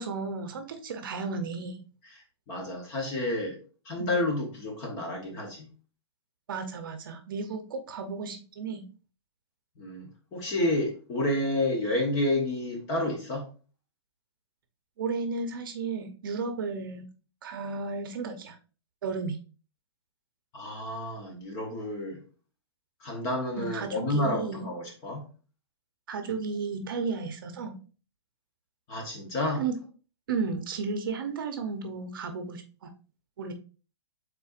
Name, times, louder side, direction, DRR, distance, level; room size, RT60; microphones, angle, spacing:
voice 1, 0.0-1.8 4.0-4.1 6.5-8.8 15.0-17.1 17.4-18.6 19.0-19.4 23.6-24.7 26.1-27.8 29.6-29.7 30.3-32.9 33.4-33.5, right 4 dB, 50° right, 7 dB, 0.8 m, -33 dB
voice 2, 2.5-3.6 3.9-5.7 9.8-13.4 20.5-22.2 23.0-25.3 28.9-29.6, left 1 dB, 20° left, 1 dB, 0.9 m, -30 dB
5.5 x 3.8 x 2.5 m, 0.37 s
hypercardioid pair, 170°, 14 cm